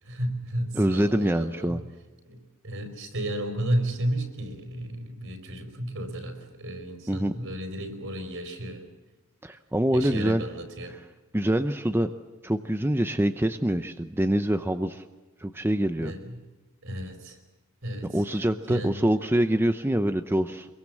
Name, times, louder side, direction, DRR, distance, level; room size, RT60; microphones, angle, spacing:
voice 1, 0.1-1.8 2.3-8.8 9.9-11.0 16.0-16.4 16.8-17.4 17.8-18.2 18.7-19.0, right 1 dB, 60° right, 7 dB, 4.4 m, -33 dB
voice 2, 0.7-1.8 7.1-7.3 9.4-10.4 10.9-11.0 11.3-12.1 12.4-15.0 15.4-16.1 18.1-20.7, right 1 dB, 10° right, 8 dB, 0.7 m, -25 dB
25.0 x 23.0 x 7.6 m, 1.2 s
head